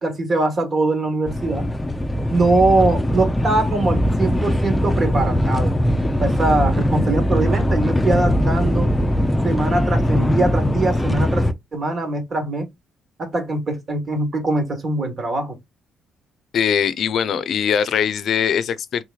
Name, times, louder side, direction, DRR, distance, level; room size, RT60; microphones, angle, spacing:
voice 1, 0.0-1.7 2.3-5.8 6.2-8.9 9.4-12.7 13.2-15.6, right 2 dB, 45° right, 1.6 m, -22 dB
sound 1, 1.3-11.5, equal, 15° left, 0.5 m, -20 dB
voice 2, 16.5-19.0, left 8 dB, 65° left, 0.5 m, -21 dB
3.9 x 3.1 x 2.3 m
cardioid pair, 90°, 0 cm